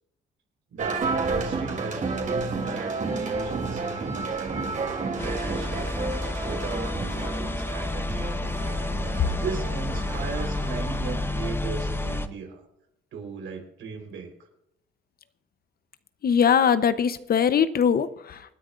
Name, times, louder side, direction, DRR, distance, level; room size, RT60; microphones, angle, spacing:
voice 1, 0.7-6.0 6.4-8.4 9.4-12.6 13.1-14.3, right 5 dB, 80° right, 2 dB, 4.1 m, -37 dB
sound 1, 0.8-11.5, right 3 dB, 40° right, 3.0 m, -31 dB
sound 2, 5.2-12.3, left 2 dB, 10° left, 0.9 m, -30 dB
voice 2, 16.2-18.5, left 7 dB, 50° left, 13 dB, 0.9 m, -21 dB
27.0 x 10.0 x 2.5 m, 0.82 s
cardioid pair, 90°, 20 cm